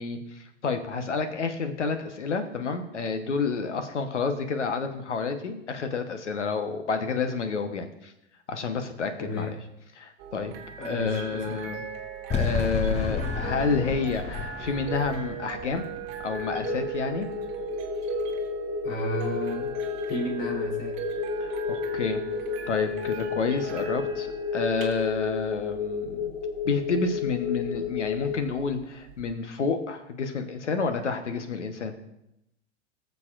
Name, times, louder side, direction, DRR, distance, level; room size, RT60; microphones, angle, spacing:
voice 1, 0.0-8.1 8.5-9.5 10.0-11.9 12.3-15.8 16.2-17.3 21.4-22.2 22.7-24.3 24.5-26.3 26.6-31.9, left 4 dB, 85° left, 7 dB, 1.2 m, -29 dB
voice 2, 9.2-9.5 10.8-11.6 18.8-21.0, left 1 dB, 60° left, -3 dB, 3.4 m, -33 dB
sound 1, 10.2-29.3, right 9 dB, 45° right, 1.4 m, -39 dB
sound 2, 12.3-17.5, left 6 dB, 20° left, 0.6 m, -32 dB
sound 3, 16.4-28.4, left 6 dB, 35° left, 1.1 m, -32 dB
19.0 x 6.8 x 2.5 m, 0.83 s
hypercardioid pair, 105°, 34 cm